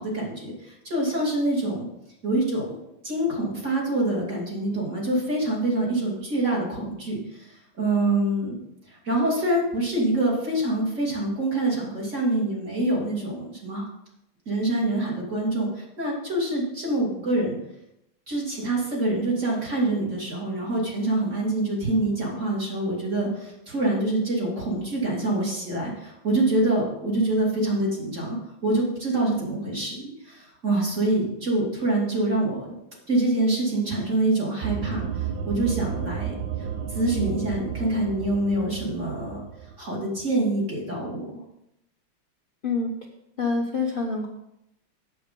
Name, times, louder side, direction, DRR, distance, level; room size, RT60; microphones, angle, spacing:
voice 1, 0.0-1.8 2.2-2.8 3.0-7.5 7.8-8.6 8.9-13.9 14.5-17.6 18.3-32.7 33.1-36.4 36.9-39.4 39.8-41.4, right 2 dB, 35° right, -3 dB, 2.9 m, -25 dB
sound 1, 34.6-39.8, right 8 dB, 70° right, 1.5 m, -32 dB
voice 2, 43.4-44.3, left 4 dB, 50° left, 0 dB, 0.6 m, -26 dB
7.8 x 7.3 x 5.2 m, 0.83 s
omnidirectional pair, 2.4 m